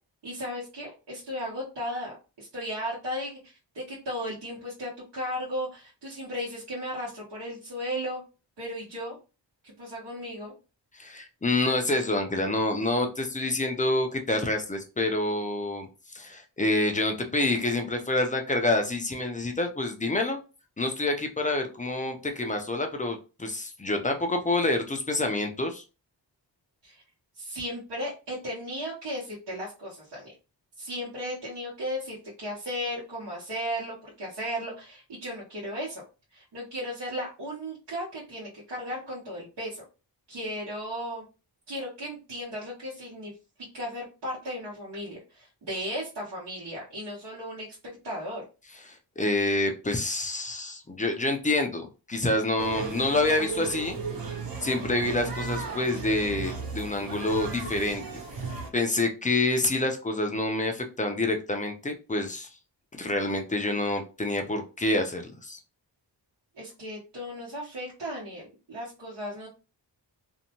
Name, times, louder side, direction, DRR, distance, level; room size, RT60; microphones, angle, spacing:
voice 1, 0.2-8.2 8.6-9.2 9.6-10.5 26.8-27.0 27.4-30.3 30.8-36.0 36.3-39.8 40.3-41.3 41.7-43.3 43.6-47.8 48.0-48.4 66.5-69.5, equal, 70° right, -7 dB, 1.1 m, -35 dB
voice 2, 10.9-15.9 16.1-20.4 20.8-25.8 49.2-54.0 54.6-58.0 58.7-62.5 63.0-65.6, left 2 dB, 20° left, 4 dB, 0.4 m, -27 dB
sound 1, 52.6-58.7, right 4 dB, 50° right, 0.8 m, -35 dB
2.6 x 2.1 x 2.8 m, 0.32 s
wide cardioid pair, 135°, 44 cm